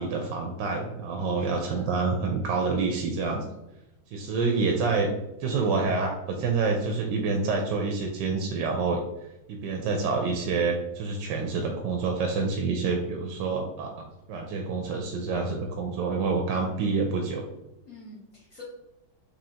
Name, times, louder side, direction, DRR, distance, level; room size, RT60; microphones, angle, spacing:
voice 1, 0.0-3.4 4.1-9.0 9.5-17.5, right 4 dB, 75° right, 2 dB, 1.2 m, -27 dB
voice 2, 1.4-1.9 17.8-18.6, left 1 dB, 50° left, -6 dB, 1.2 m, -47 dB
4.2 x 3.1 x 2.7 m, 0.92 s
omnidirectional pair, 2.0 m